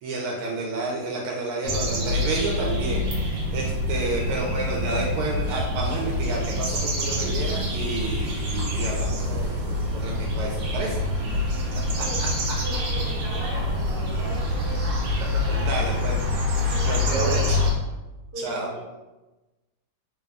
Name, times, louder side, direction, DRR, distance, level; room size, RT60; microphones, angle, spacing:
voice 1, 0.0-11.0 12.0-12.1 15.5-16.1 16.6-17.6 18.4-18.7, right 2 dB, 80° right, -1 dB, 1.4 m, -30 dB
sound 1, 1.6-17.7, left 1 dB, 60° right, 1.4 m, -26 dB
voice 2, 4.0-4.7 11.2-15.1 15.5-17.5 18.3-18.8, right 1 dB, 35° right, -8 dB, 1.3 m, -39 dB
3.8 x 2.2 x 3.4 m, 1.1 s
omnidirectional pair, 2.4 m